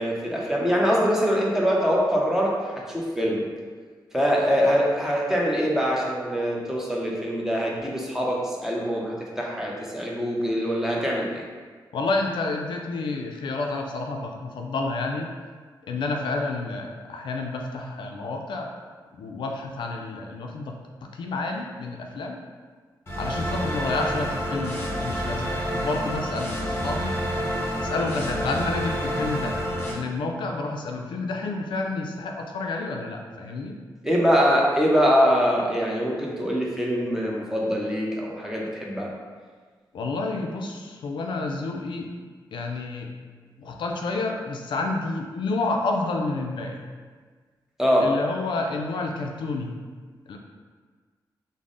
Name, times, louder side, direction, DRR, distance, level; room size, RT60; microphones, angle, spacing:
voice 1, 0.0-3.5 4.1-11.4 34.0-39.1 47.8-48.1, equal, 5° right, -3 dB, 0.7 m, -23 dB
voice 2, 11.9-15.3 15.8-18.7 19.1-20.7 21.1-22.4 23.2-27.1 27.8-29.6 29.9-33.8 39.9-42.1 42.5-43.1 43.6-46.8 48.0-49.8 50.3-50.4, left 3 dB, 75° left, 2 dB, 0.3 m, -29 dB
sound 1, 23.1-29.9, equal, 30° left, 0.9 m, -28 dB
3.4 x 2.0 x 3.8 m, 1.5 s
cardioid pair, 80°, 8 cm